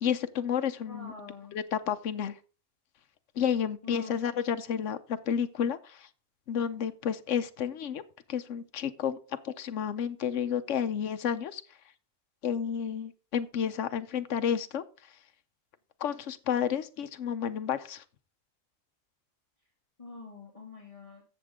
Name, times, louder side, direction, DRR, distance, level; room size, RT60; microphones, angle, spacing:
voice 1, 0.0-1.1 1.5-2.3 3.4-6.1 6.5-8.0 8.3-9.2 9.4-11.6 12.4-14.8 16.0-18.0, left 8 dB, 85° left, 10 dB, 1.1 m, -31 dB
voice 2, 0.8-1.6 3.8-4.4 20.0-21.2, left 4 dB, 30° left, 0 dB, 2.4 m, -46 dB
14.0 x 7.4 x 3.6 m, 0.37 s
omnidirectional pair, 1.2 m